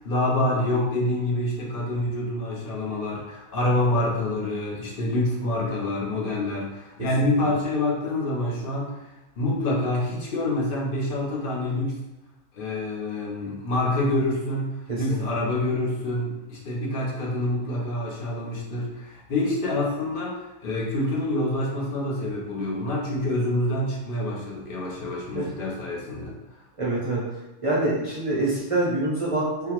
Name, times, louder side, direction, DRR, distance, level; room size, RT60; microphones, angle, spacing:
voice 1, 0.0-8.9 9.4-12.0 12.5-26.3, left 1 dB, 50° left, -3 dB, 0.8 m, -26 dB
voice 2, 26.8-27.2 27.6-29.7, right 2 dB, 40° right, -7 dB, 0.5 m, -25 dB
3.8 x 2.1 x 3.0 m, 0.97 s
omnidirectional pair, 1.5 m